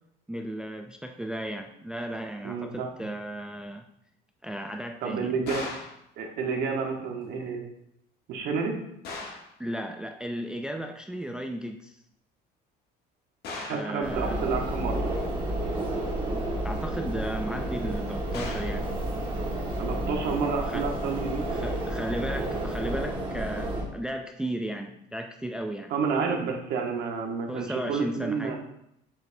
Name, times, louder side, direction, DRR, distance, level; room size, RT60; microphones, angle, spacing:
voice 1, 0.3-3.9 4.4-5.4 9.6-12.0 13.7-14.4 16.6-18.9 20.7-20.9 21.5-25.9 27.5-28.6, right 1 dB, 5° right, 4 dB, 0.3 m, -35 dB
voice 2, 2.4-2.9 5.0-5.6 6.2-7.6 8.3-8.8 13.6-15.0 19.8-21.5 25.9-28.6, right 5 dB, 70° right, 2 dB, 1.3 m, -30 dB
sound 1, 5.5-6.0 9.0-9.5 13.4-13.9 18.3-18.8, left 3 dB, 65° left, 1.6 m, -37 dB
sound 2, 14.0-23.8, right 1 dB, 30° right, 1.5 m, -31 dB
7.4 x 5.3 x 2.7 m, 0.76 s
cardioid pair, 135°, 17 cm